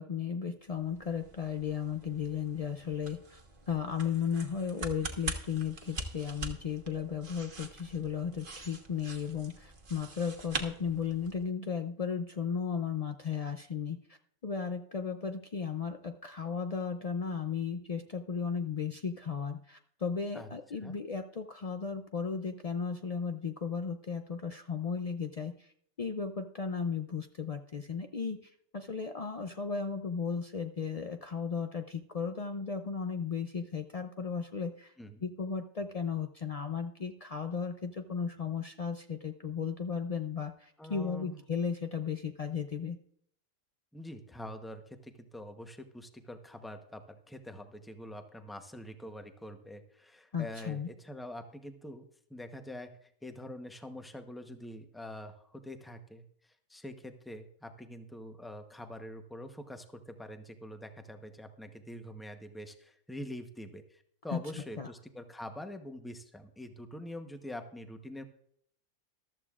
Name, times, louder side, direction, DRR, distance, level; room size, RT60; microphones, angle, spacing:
voice 1, 0.0-3.4 3.7-14.2 14.4-25.7 26.0-34.9 35.2-43.0 50.3-50.9 64.3-64.4 64.8-64.9, left 6 dB, 70° left, 6 dB, 0.3 m, -35 dB
sound 1, 0.7-11.5, right 3 dB, 40° right, 1.4 m, -44 dB
voice 2, 40.8-41.4 43.9-56.2 56.7-68.2, left 1 dB, ahead, 6 dB, 0.7 m, -45 dB
14.0 x 13.0 x 2.4 m, 0.65 s
omnidirectional pair, 1.5 m